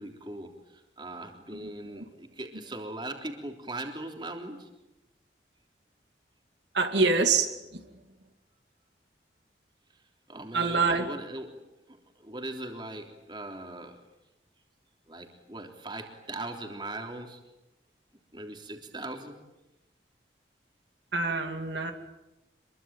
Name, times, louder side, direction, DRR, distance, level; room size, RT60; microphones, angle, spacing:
voice 1, 0.0-4.7 10.3-11.6 12.2-14.0 15.1-17.4 18.3-19.4, right 2 dB, 25° right, 4 dB, 3.4 m, -40 dB
voice 2, 6.7-7.8 10.5-11.1 21.1-21.9, right 4 dB, 70° right, 5 dB, 2.7 m, -26 dB
27.0 x 22.5 x 9.2 m, 0.94 s
head